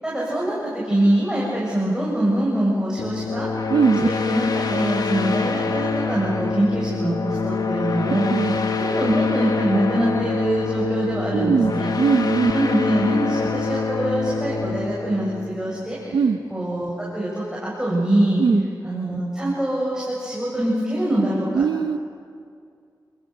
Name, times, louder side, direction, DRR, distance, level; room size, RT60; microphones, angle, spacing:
voice 1, 0.0-3.5 4.0-8.3 8.7-11.9 12.5-16.2 16.5-18.4 18.8-21.6, right 1 dB, 10° right, -6 dB, 7.3 m, -24 dB
sound 1, 3.0-16.3, left 4 dB, 65° left, 1.8 m, -26 dB
voice 2, 3.7-4.1 8.3-8.6 11.3-11.7 12.0-12.5 16.1-16.4 18.4-18.6 21.5-22.0, right 5 dB, 80° right, 9 dB, 0.9 m, -19 dB
28.5 x 22.0 x 6.7 m, 2.2 s
cardioid pair, 60°, 7 cm